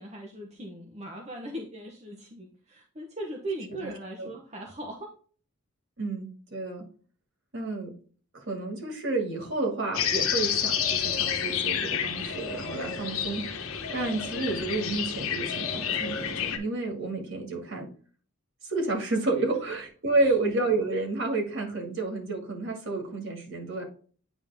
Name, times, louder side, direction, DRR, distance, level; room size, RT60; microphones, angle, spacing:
voice 1, 0.0-5.1 20.2-20.3, right 1 dB, 30° right, 0 dB, 0.9 m, -39 dB
voice 2, 6.0-6.8 7.5-7.9 8.3-17.9 18.6-23.8, right 2 dB, 55° right, 1 dB, 2.2 m, -30 dB
sound 1, 9.9-16.6, left 8 dB, 70° left, 1.1 m, -30 dB
9.0 x 3.6 x 3.5 m, 0.41 s
head